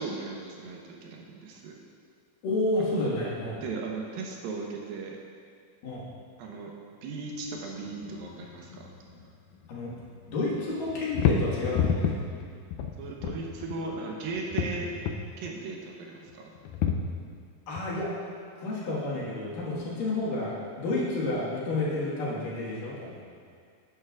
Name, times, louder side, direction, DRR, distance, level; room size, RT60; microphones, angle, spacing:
voice 1, 0.0-1.7 2.8-3.1 3.6-5.2 6.4-6.7 7.0-8.8 13.0-14.9 15.4-16.5, right 3 dB, 80° right, 0 dB, 2.7 m, -37 dB
voice 2, 2.4-3.6 5.8-6.1 9.7-9.9 10.3-12.3 17.7-18.1 18.6-23.2, left 2 dB, 65° left, -6 dB, 3.2 m, -30 dB
sound 1, 7.9-9.3 9.5-10.4 10.8-13.9 14.3-15.4 16.3-17.4 17.8-17.9, left 7 dB, 90° left, 1.8 m, -30 dB
11.5 x 9.7 x 2.4 m, 2.2 s
omnidirectional pair, 4.2 m